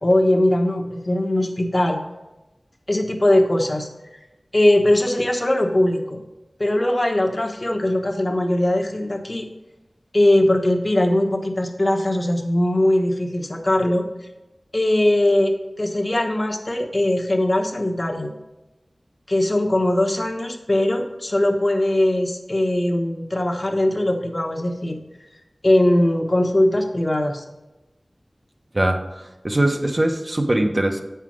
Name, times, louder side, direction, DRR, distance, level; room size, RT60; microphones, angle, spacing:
voice 1, 0.0-2.0 2.9-3.9 4.5-6.2 6.6-9.4 10.1-14.0 14.7-18.3 19.3-25.0 25.6-27.4, left 1 dB, 35° left, 2 dB, 1.1 m, -20 dB
voice 2, 28.7-29.0 29.4-31.0, right 1 dB, 35° right, 3 dB, 1.0 m, -21 dB
8.2 x 5.7 x 6.3 m, 1.0 s
wide cardioid pair, 60°, 0 cm